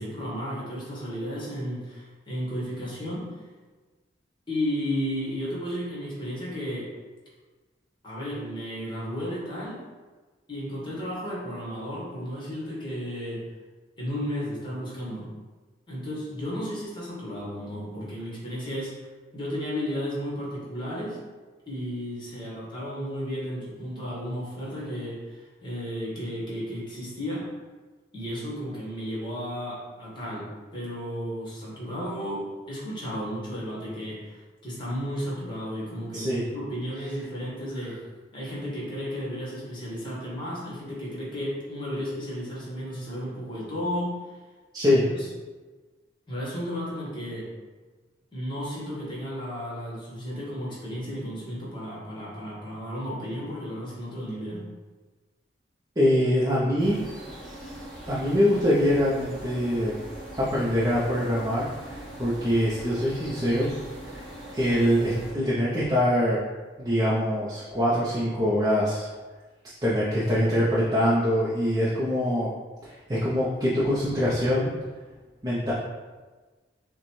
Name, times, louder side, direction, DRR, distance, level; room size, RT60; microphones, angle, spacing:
voice 1, 0.0-3.3 4.5-6.9 8.0-9.8 10.5-13.4 14.0-15.3 15.9-19.1 19.3-21.2 21.7-27.5 28.1-38.0 38.3-44.4 44.8-45.3 46.3-47.5 48.3-54.7, equal, 25° left, -5 dB, 1.2 m, -33 dB
voice 2, 44.7-45.0 56.0-57.0 58.1-60.0 60.4-63.7 64.1-64.3 64.5-66.4 66.8-69.1 69.8-72.5 72.8-74.7 75.4-75.7, equal, 20° right, -8 dB, 0.6 m, -24 dB
sound 1, 56.8-65.3, right 1 dB, ahead, 1.0 m, -41 dB
6.4 x 2.2 x 3.1 m, 1.3 s
head